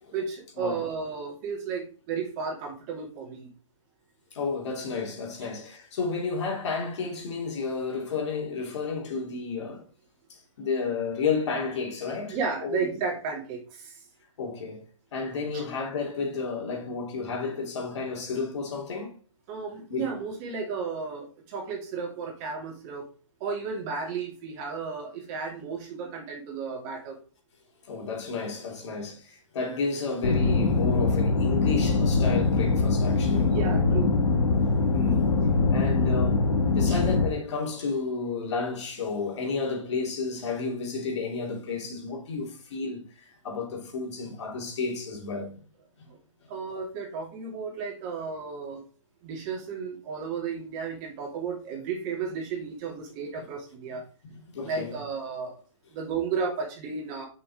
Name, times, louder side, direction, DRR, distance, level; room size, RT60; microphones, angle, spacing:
voice 1, 0.1-3.5 12.3-14.0 15.5-15.6 19.5-23.1 23.4-27.2 33.4-34.2 36.9-37.0 46.5-48.8 49.2-54.0 54.6-55.6 55.9-57.3, right 5 dB, 35° right, 2.6 m, -33 dB
voice 2, 4.3-9.8 10.3-12.4 12.6-12.9 14.4-14.8 15.1-19.1 19.9-20.1 27.9-33.5 34.9-35.3 35.7-45.5 53.4-53.5 53.9-54.0 54.2-54.9, left 4 dB, 60° left, 2.8 m, -32 dB
sound 1, 30.2-37.3, left 4 dB, 80° left, 1.8 m, -23 dB
6.0 x 5.7 x 3.6 m
hypercardioid pair, 145°, 17 cm